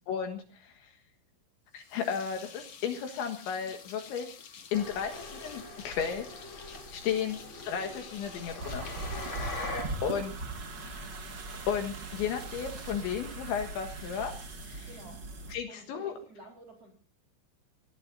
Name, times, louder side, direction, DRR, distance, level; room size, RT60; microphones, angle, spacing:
voice 1, 0.1-0.9 1.7-4.3 4.7-6.3 6.7-8.9 9.6-9.8 10.0-10.3 11.7-14.3 14.6-14.9 15.5-16.1, left 7 dB, 70° left, 5 dB, 3.7 m, -34 dB
sound 1, 1.7-10.5, left 7 dB, 50° left, 2.2 m, -50 dB
sound 2, 4.7-9.8, left 2 dB, 25° left, 5.6 m, -42 dB
sound 3, 8.6-15.5, right 2 dB, 50° right, 1.2 m, -40 dB
voice 2, 9.3-9.9 14.8-15.2 15.7-16.9, right 1 dB, 30° right, 4 dB, 4.7 m, -53 dB
28.0 x 18.5 x 2.7 m, 0.38 s
omnidirectional pair, 5.9 m